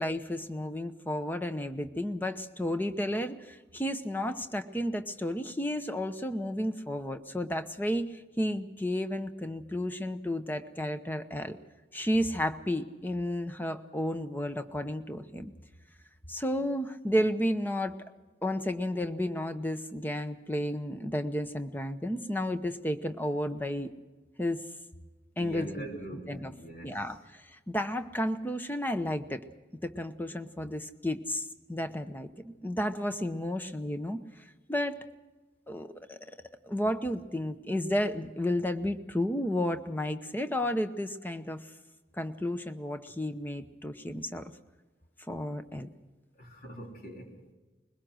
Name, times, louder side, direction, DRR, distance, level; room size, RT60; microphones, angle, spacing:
voice 1, 0.0-11.6 11.9-15.5 16.3-17.9 18.4-23.9 24.4-24.6 25.4-25.9 26.3-26.5 26.8-29.4 29.8-34.2 34.7-35.0 35.7-36.2 36.6-41.6 42.1-44.4 45.3-45.9, left 1 dB, 10° left, 9 dB, 0.9 m, -32 dB
voice 2, 25.4-27.0 46.3-47.5, right 1 dB, 50° left, 1 dB, 3.3 m, -43 dB
21.5 x 20.5 x 6.4 m, 1.2 s
head